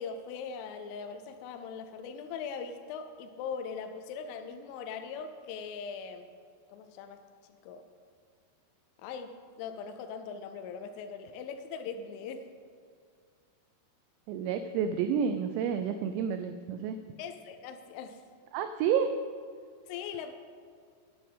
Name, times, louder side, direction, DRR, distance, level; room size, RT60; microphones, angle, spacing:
voice 1, 0.0-6.3 6.7-7.2 7.6-7.8 9.0-12.5 17.2-18.2 19.9-20.3, left 6 dB, 85° left, 8 dB, 3.1 m, -40 dB
voice 2, 14.3-17.0 18.5-19.2, right 7 dB, 85° right, 9 dB, 2.5 m, -30 dB
8.9 x 7.6 x 8.2 m, 2.2 s
omnidirectional pair, 5.6 m